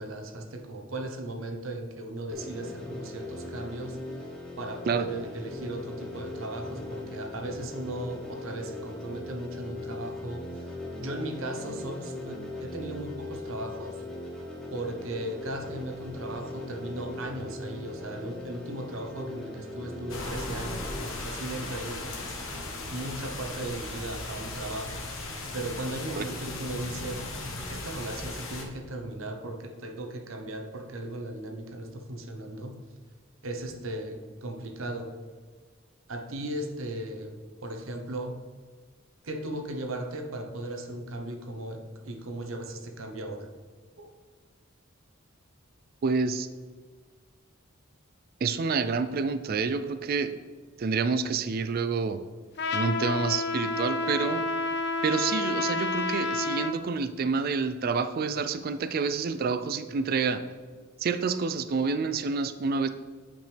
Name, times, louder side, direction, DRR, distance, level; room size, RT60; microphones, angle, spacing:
voice 1, 0.0-4.1 4.6-14.0 14.7-22.3 22.9-25.1 25.5-27.3 27.7-32.8 33.4-35.2 36.1-38.4 39.2-43.5 44.0-44.1, right 1 dB, 80° right, 4 dB, 1.0 m, -37 dB
sound 1, 2.3-21.0, left 2 dB, 5° left, 1.3 m, -39 dB
sound 2, 20.1-28.6, left 2 dB, 75° left, 1.3 m, -37 dB
voice 2, 46.0-46.5 48.4-50.3 50.8-52.2 52.7-54.4 55.0-60.4 61.0-62.9, right 5 dB, 45° right, 11 dB, 0.4 m, -28 dB
Trumpet, 52.6-56.8, left 2 dB, 55° left, 0.6 m, -29 dB
9.1 x 5.2 x 3.4 m, 1.5 s
head